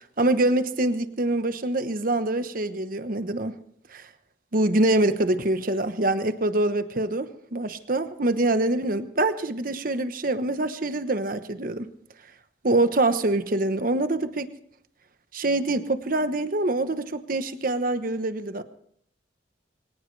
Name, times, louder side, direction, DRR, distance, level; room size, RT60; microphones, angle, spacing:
voice 1, 0.2-3.6 3.9-4.1 4.5-11.9 12.6-14.5 15.3-18.6, right 2 dB, 50° right, 10 dB, 1.1 m, -25 dB
24.0 x 18.5 x 3.3 m, 0.67 s
head